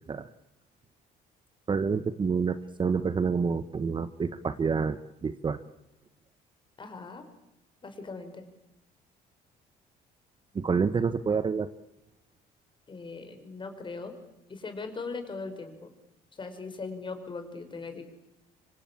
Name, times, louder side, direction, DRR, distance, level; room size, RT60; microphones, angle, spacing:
voice 1, 1.7-5.0 5.2-5.6 10.5-11.7, right 5 dB, 30° right, 12 dB, 1.1 m, -28 dB
voice 2, 6.8-7.2 7.8-8.4 12.9-14.1 14.5-15.9 16.3-18.0, left 4 dB, 30° left, 7 dB, 5.6 m, -39 dB
26.0 x 25.0 x 8.8 m, 0.88 s
cardioid pair, 110°, 17 cm